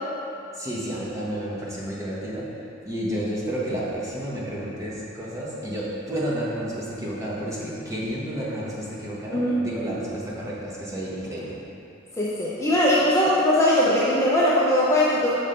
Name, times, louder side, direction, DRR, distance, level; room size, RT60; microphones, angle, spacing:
voice 1, 0.5-2.5 2.8-11.6, right 1 dB, 15° right, -6 dB, 1.1 m, -31 dB
voice 2, 12.2-15.3, left 1 dB, 15° left, -7 dB, 0.6 m, -20 dB
5.9 x 5.2 x 4.4 m, 2.7 s
head